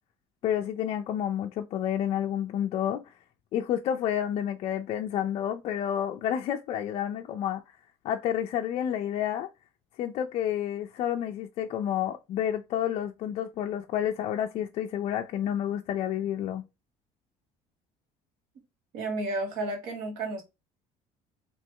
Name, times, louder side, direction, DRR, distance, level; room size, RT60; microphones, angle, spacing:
voice 1, 0.4-3.0 3.5-7.6 8.0-9.5 10.0-16.6, left 10 dB, 45° left, 0.4 m, -30 dB
voice 2, 18.9-20.4, right 2 dB, 85° right, 1.7 m, -32 dB
3.2 x 2.9 x 4.5 m
cardioid pair, 165°, 14 cm